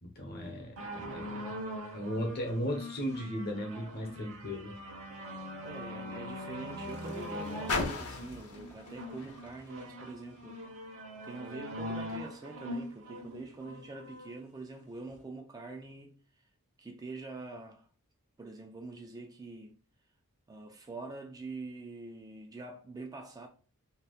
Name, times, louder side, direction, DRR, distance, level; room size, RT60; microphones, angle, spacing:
voice 1, 0.0-1.3 1.9-4.7, equal, 45° left, 0.9 m, -36 dB
sound 1, 0.8-14.3 15.1-15.2, equal, 65° right, 1.1 m, -42 dB
Car, 4.1-10.7 11.5-11.6, left 3 dB, 85° left, 0.7 m, -41 dB
voice 2, 5.6-16.2 16.8-17.9 18.4-19.7 20.5-23.5, right 3 dB, 15° right, 0.3 m, -45 dB
3.4 x 2.8 x 2.3 m
head